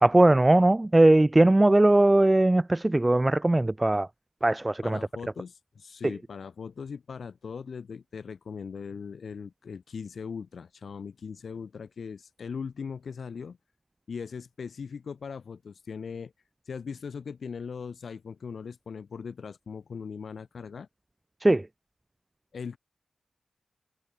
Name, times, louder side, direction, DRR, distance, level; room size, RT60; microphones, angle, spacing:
voice 1, 0.0-4.1 4.4-5.0 21.4-21.6, right 2 dB, 20° right, 0.5 m, -20 dB
voice 2, 4.8-13.6 14.1-16.3 16.7-20.9 22.5-22.8, left 6 dB, 75° left, 3.5 m, -39 dB
cardioid pair, 75°, 0 cm